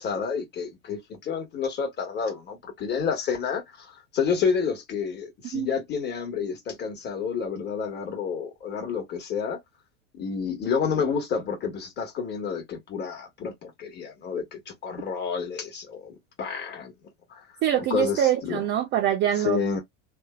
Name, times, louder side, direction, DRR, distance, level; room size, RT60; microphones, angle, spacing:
voice 1, 0.0-9.6 10.1-16.9 17.3-17.4 17.9-18.6 19.4-19.8, left 6 dB, 30° left, 1.2 m, -29 dB
voice 2, 17.6-19.8, right 11 dB, 30° right, 0.4 m, -24 dB
3.1 x 2.0 x 2.3 m
supercardioid pair, 130°, 37 cm